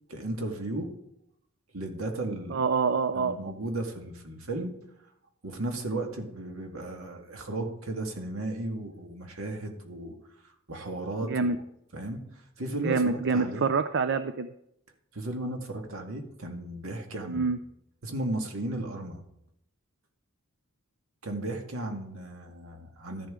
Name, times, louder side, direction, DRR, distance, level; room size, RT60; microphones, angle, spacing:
voice 1, 0.1-0.9 1.7-2.6 3.1-4.7 5.4-10.1 10.7-11.6 11.9-12.2 12.6-13.7 15.1-17.5 18.0-19.2 21.2-23.3, right 1 dB, 75° right, 3 dB, 2.0 m, -35 dB
voice 2, 2.5-3.5 11.2-11.6 12.8-14.5 17.3-17.6, right 4 dB, 55° right, 11 dB, 0.5 m, -26 dB
13.0 x 10.5 x 3.8 m, 0.78 s
head